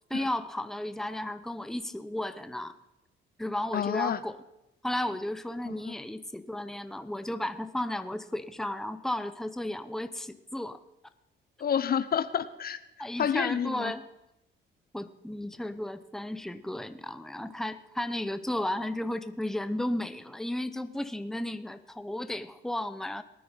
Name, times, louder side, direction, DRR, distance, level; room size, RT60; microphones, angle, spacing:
voice 1, 0.1-2.7 3.4-4.4 4.8-10.8 13.0-14.0 14.9-23.2, left 1 dB, ahead, 11 dB, 0.8 m, -34 dB
voice 2, 3.7-4.2 5.6-5.9 11.6-12.8 13.2-13.9, left 8 dB, 50° left, 14 dB, 0.7 m, -29 dB
19.0 x 9.6 x 5.6 m, 0.90 s
cardioid pair, 90°, 20 cm